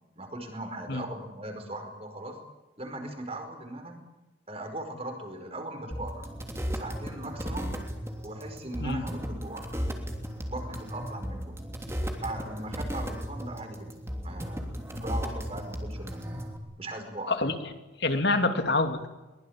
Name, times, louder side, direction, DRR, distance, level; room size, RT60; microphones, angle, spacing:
voice 1, 0.2-2.4 2.8-4.0 4.5-6.3 6.7-7.7 8.2-9.7 10.5-11.5 12.1-14.7 14.9-16.5 16.8-17.3, right 1 dB, 30° right, 5 dB, 5.0 m, -39 dB
sound 1, 5.9-16.6, equal, 15° right, 3.2 m, -35 dB
voice 2, 18.0-19.1, left 2 dB, 60° left, 7 dB, 2.8 m, -26 dB
23.0 x 21.5 x 8.8 m, 1.1 s
head